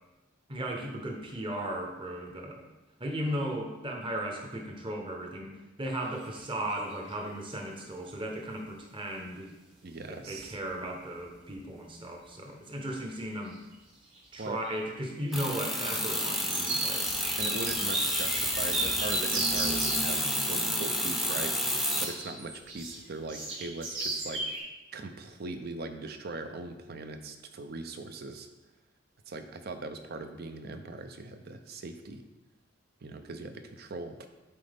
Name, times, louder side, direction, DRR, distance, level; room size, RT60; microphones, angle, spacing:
voice 1, 0.5-2.7 3.0-5.5 5.8-9.5 10.1-13.6 14.3-17.1, right 1 dB, 25° right, 1 dB, 0.9 m, -36 dB
sound 1, 6.2-6.4 6.7-7.3 9.3-9.4 10.0-10.1 10.4-10.7 11.0-11.6 12.1-12.2 13.3-13.8 14.0-20.0 21.9-24.6, right 2 dB, 70° right, 1.9 m, -36 dB
voice 2, 9.8-10.6 14.4-14.6 17.4-21.7 22.0-24.6 24.9-28.5 29.3-32.2 33.0-34.2, right 3 dB, 55° right, 8 dB, 0.5 m, -40 dB
sound 2, 15.3-22.1, equal, ahead, 0.6 m, -30 dB
7.7 x 4.3 x 3.5 m, 1.1 s
head